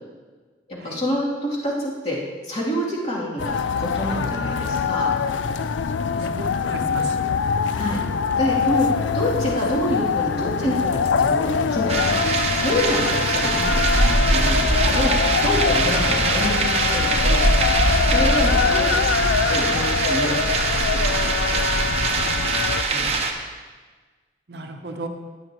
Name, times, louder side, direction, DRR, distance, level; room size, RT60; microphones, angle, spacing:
voice 1, 0.8-2.2 2.4-5.1 7.7-8.0 8.4-17.4 18.1-18.9 19.1-19.2 19.5-21.2 21.5-21.6 22.9-23.3, equal, 35° left, -7 dB, 2.9 m, -27 dB
sound 1, 3.4-22.8, left 5 dB, 85° left, 0.4 m, -23 dB
voice 2, 6.2-7.1 13.6-13.7 24.5-25.1, right 2 dB, 60° right, 5 dB, 0.8 m, -34 dB
sound 2, 11.9-23.3, right 3 dB, 35° right, 0.9 m, -22 dB
14.0 x 9.6 x 3.0 m, 1.4 s
head